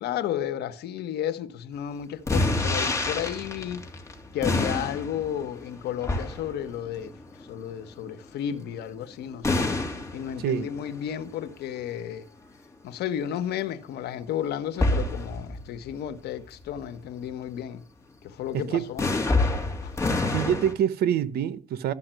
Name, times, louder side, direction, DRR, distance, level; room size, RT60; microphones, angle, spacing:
voice 1, 0.0-3.8 4.3-7.1 7.5-9.7 10.1-12.3 12.8-17.8 18.2-19.1 19.8-19.9, left 10 dB, 75° left, 1.4 m, -32 dB
sound 1, 2.3-8.1 9.4-11.0 14.7-15.9 16.6-16.8 19.0-20.7, left 2 dB, 15° left, 3.0 m, -28 dB
voice 2, 10.4-10.7 18.5-18.9 20.3-21.9, right 10 dB, 70° right, 1.0 m, -26 dB
13.0 x 5.8 x 9.1 m
cardioid pair, 110°, 17 cm